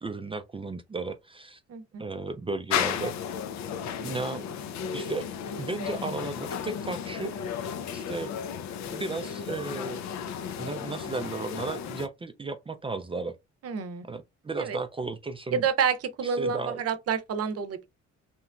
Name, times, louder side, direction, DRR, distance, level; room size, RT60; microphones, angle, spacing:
voice 1, 0.0-1.6 2.0-3.1 4.0-4.5 4.9-5.3 5.6-7.7 7.9-8.3 8.9-10.0 10.6-13.3 14.1-15.7 16.2-16.8, right 3 dB, 20° right, 0.3 m, -34 dB
voice 2, 1.7-2.0 13.6-14.0 14.6-14.8 15.5-17.9, right 6 dB, 55° right, 0.7 m, -28 dB
sound 1, 2.7-12.1, left 8 dB, 70° left, 0.5 m, -34 dB
3.0 x 2.4 x 2.2 m
cardioid pair, 90°, 30 cm